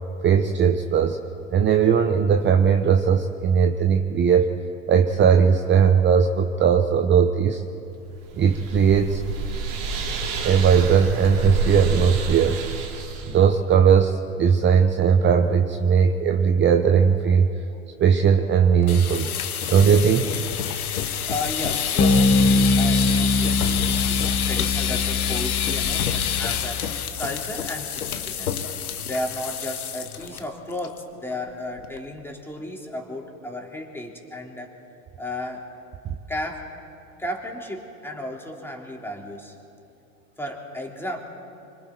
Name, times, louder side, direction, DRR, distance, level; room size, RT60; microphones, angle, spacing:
voice 1, 0.2-1.2 1.5-4.5 4.9-7.6 8.4-9.2 10.4-12.6 13.3-17.5 18.0-19.3 19.7-20.3, right 7 dB, 25° right, 6 dB, 0.9 m, -18 dB
sound 1, 8.1-13.4, right 4 dB, 50° right, 3.4 m, -28 dB
sound 2, 18.8-30.4 30.7-31.0 31.3-31.4 31.8-32.2, left 9 dB, 85° left, 1.3 m, -27 dB
voice 2, 21.2-28.6 29.1-34.7 35.2-35.7 36.3-36.7 37.2-39.5 40.4-41.2, left 1 dB, 5° left, 0 dB, 3.3 m, -34 dB
sound 3, 22.0-26.8, left 3 dB, 30° left, 2.3 m, -22 dB
25.5 x 25.0 x 4.4 m, 2.7 s
hypercardioid pair, 95°, 43 cm